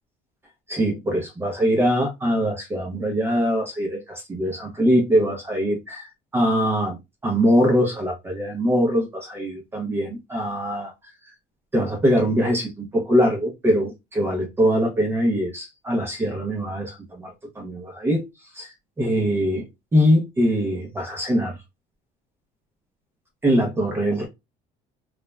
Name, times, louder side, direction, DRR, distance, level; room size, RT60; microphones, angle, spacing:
voice 1, 0.7-7.0 7.2-10.9 11.7-17.3 17.6-18.2 18.5-19.7 19.9-21.6 23.4-24.3, equal, 15° right, 0.6 m, -22 dB
2.4 x 2.1 x 3.2 m
cardioid pair, 170°, 16 cm